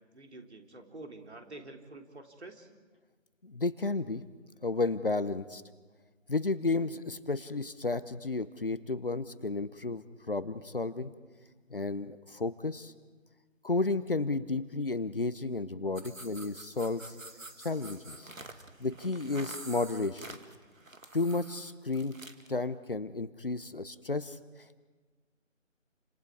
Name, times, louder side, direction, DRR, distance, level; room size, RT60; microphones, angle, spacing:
voice 1, 0.1-2.7, right 2 dB, 55° right, 4 dB, 3.3 m, -48 dB
voice 2, 3.4-4.2 4.6-5.6 6.3-11.1 11.7-12.9 13.6-17.1 17.6-18.3 18.8-20.4 21.1-22.2 22.5-24.4, left 3 dB, 45° left, 13 dB, 0.9 m, -32 dB
sound 1, 15.9-22.5, right 2 dB, 90° right, 2.2 m, -48 dB
29.5 x 26.5 x 4.8 m, 1.4 s
figure-of-eight pair, 165°, 39 cm